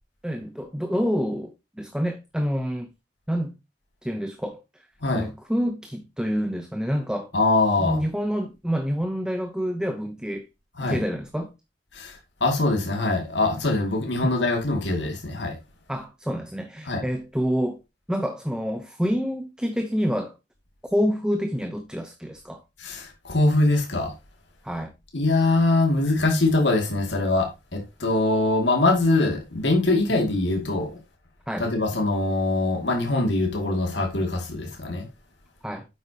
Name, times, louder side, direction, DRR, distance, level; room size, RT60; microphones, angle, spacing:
voice 1, 0.2-2.9 3.3-3.5 4.0-4.6 5.1-7.3 7.8-10.5 10.8-11.5 14.2-14.4 15.9-17.8 18.1-20.3 20.9-22.6 24.6-24.9 31.5-31.7 35.6-35.9, equal, 5° right, 0.7 m, -27 dB
voice 2, 7.3-8.0 10.8-11.0 11.9-15.6 16.8-17.0 22.8-24.1 25.1-30.9 31.6-35.1, left 2 dB, 80° left, 2.3 m, -23 dB
10.0 x 8.0 x 2.8 m
head